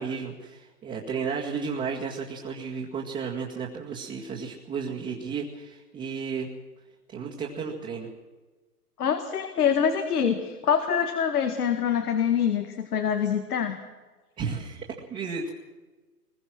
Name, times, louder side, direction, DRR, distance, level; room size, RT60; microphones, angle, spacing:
voice 1, 0.0-6.5 7.1-8.1 14.4-15.5, right 5 dB, 15° right, -4 dB, 2.1 m, -33 dB
voice 2, 9.0-13.8, left 7 dB, 70° left, 6 dB, 2.0 m, -25 dB
23.0 x 21.5 x 6.2 m, 1.3 s
hypercardioid pair, 140°, 47 cm